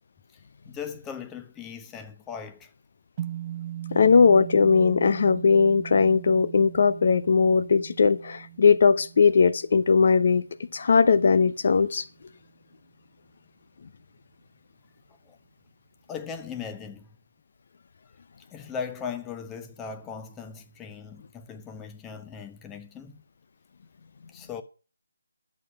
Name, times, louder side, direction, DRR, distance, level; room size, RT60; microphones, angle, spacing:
voice 1, 0.6-2.7 15.3-15.4 16.1-17.1 18.5-23.2 24.3-24.6, left 6 dB, 10° left, 0.9 m, -38 dB
sound 1, 3.2-11.6, right 12 dB, 30° right, 0.7 m, -40 dB
voice 2, 3.9-10.4 10.7-12.0, left 5 dB, 50° left, 0.7 m, -19 dB
11.0 x 7.5 x 5.8 m
figure-of-eight pair, 155°, 0 cm